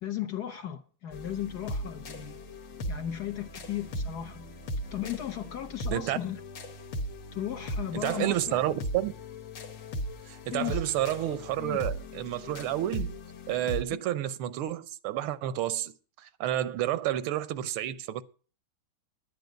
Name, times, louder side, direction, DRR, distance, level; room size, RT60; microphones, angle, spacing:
voice 1, 0.0-2.4 2.9-4.5 4.9-6.4 7.3-8.6 10.5-11.0 11.6-11.8 13.9-14.0, left 11 dB, 55° left, 1.4 m, -36 dB
sound 1, 1.1-13.8, equal, 80° left, 2.1 m, -38 dB
voice 2, 7.9-9.1 10.3-13.1 13.5-15.9 16.2-18.2, right 13 dB, 90° right, 1.6 m, -30 dB
10.5 x 10.0 x 5.1 m
omnidirectional pair, 2.3 m